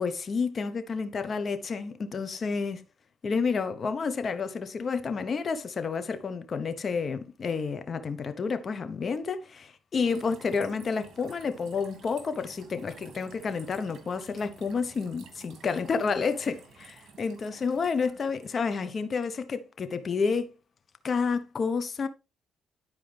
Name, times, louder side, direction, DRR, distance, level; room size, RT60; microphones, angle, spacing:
voice 1, 0.0-2.8 3.2-20.5 21.0-22.1, left 5 dB, 45° left, 1.0 m, -30 dB
sound 1, 9.9-18.8, right 5 dB, 60° right, 2.4 m, -52 dB
10.5 x 4.7 x 3.4 m
cardioid pair, 90°, 0 cm